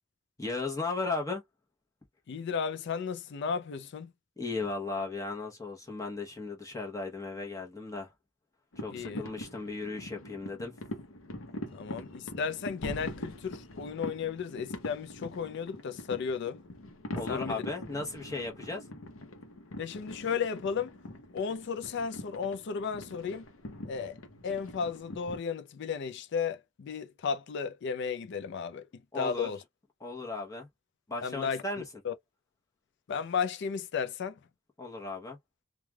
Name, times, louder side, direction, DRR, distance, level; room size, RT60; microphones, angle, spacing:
voice 1, 0.4-1.4 4.4-8.1 8.8-10.7 17.1-18.8 29.1-29.5 30.0-30.7 31.1-31.8 34.8-35.4, left 3 dB, 15° left, 0.9 m, -36 dB
voice 2, 2.3-4.1 8.9-9.3 11.7-16.6 17.3-17.6 19.8-21.0 21.3-23.5 23.9-24.2 24.4-29.6 31.2-31.6 32.0-32.1 33.1-34.4, left 6 dB, 60° left, 0.4 m, -34 dB
sound 1, 8.7-25.4, left 1 dB, 85° left, 0.7 m, -43 dB
3.2 x 2.2 x 2.3 m
head